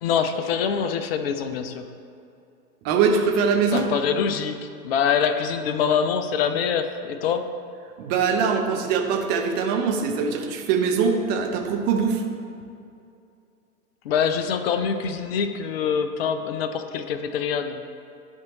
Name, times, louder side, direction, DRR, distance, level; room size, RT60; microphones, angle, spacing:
voice 1, 0.0-1.9 3.7-4.6 4.8-7.4 14.0-17.9, left 7 dB, 40° left, 9 dB, 0.5 m, -24 dB
voice 2, 2.8-3.9 8.0-12.2, right 5 dB, 20° right, 3 dB, 0.6 m, -22 dB
11.5 x 4.4 x 2.9 m, 2.5 s
figure-of-eight pair, 100°, 46 cm